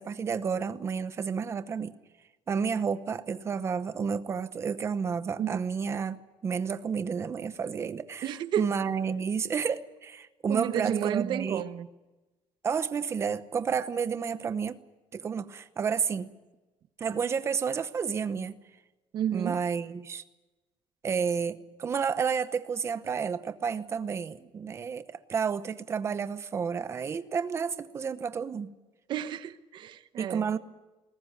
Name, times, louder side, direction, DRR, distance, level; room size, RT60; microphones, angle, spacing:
voice 1, 0.0-1.9 2.5-6.2 6.4-11.6 12.6-14.8 15.1-16.3 17.0-18.5 19.3-20.2 21.0-28.7 30.2-30.6, right 6 dB, 25° right, 0.9 m, -31 dB
voice 2, 8.2-8.7 10.5-11.9 19.1-19.6 29.1-30.5, right 10 dB, 50° right, 1.0 m, -31 dB
21.0 x 18.5 x 9.5 m
cardioid pair, 180°, 10 cm